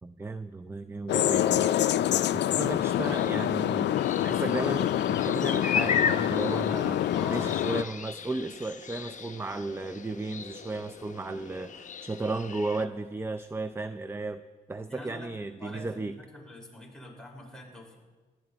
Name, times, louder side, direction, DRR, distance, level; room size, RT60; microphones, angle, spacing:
voice 1, 0.0-1.7 2.3-3.9 4.2-7.0 7.3-14.4 14.7-16.2, right 2 dB, 10° right, 12 dB, 0.5 m, -34 dB
sound 1, 1.1-7.8, left 11 dB, 65° left, 0.4 m, -26 dB
sound 2, 2.8-12.8, left 6 dB, 40° left, 0.8 m, -36 dB
voice 2, 7.1-7.6 14.9-18.0, left 1 dB, 5° left, -2 dB, 4.8 m, -44 dB
18.5 x 12.5 x 4.1 m, 1.3 s
cardioid pair, 75°, 19 cm